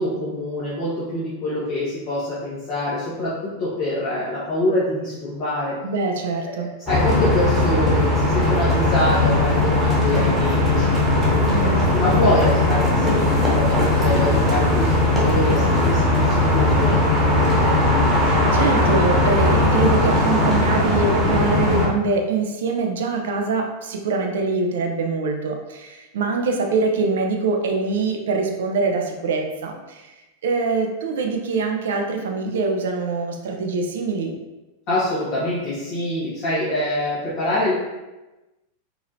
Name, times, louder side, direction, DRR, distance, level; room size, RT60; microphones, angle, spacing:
voice 1, 0.0-5.8 6.4-11.0 11.6-17.8 34.9-37.7, left 1 dB, 45° left, -9 dB, 1.3 m, -25 dB
voice 2, 5.8-6.7 11.5-12.3 18.3-30.1 30.4-34.3, right 4 dB, 60° right, 3 dB, 0.6 m, -24 dB
sound 1, 6.9-21.9, left 2 dB, 15° right, 1.3 m, -18 dB
4.5 x 3.8 x 2.7 m, 1.1 s
figure-of-eight pair, 90°, 0 cm